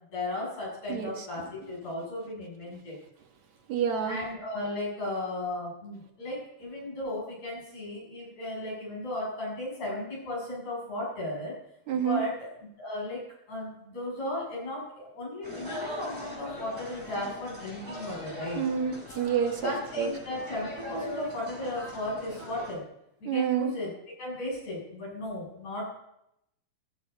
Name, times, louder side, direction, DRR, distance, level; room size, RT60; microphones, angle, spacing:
voice 1, 0.1-3.0 4.0-11.5 12.0-12.5 12.8-13.2 13.5-18.6 19.6-22.8 23.2-23.9 24.2-25.9, left 1 dB, 65° left, -5 dB, 9.2 m, -35 dB
voice 2, 0.9-1.3 3.7-4.2 11.9-12.2 18.6-20.1 23.3-23.7, right 7 dB, 70° right, 3 dB, 2.9 m, -28 dB
sound 1, 15.4-22.7, left 1 dB, 30° right, 6.9 m, -41 dB
15.5 x 14.0 x 5.4 m, 0.81 s
omnidirectional pair, 3.4 m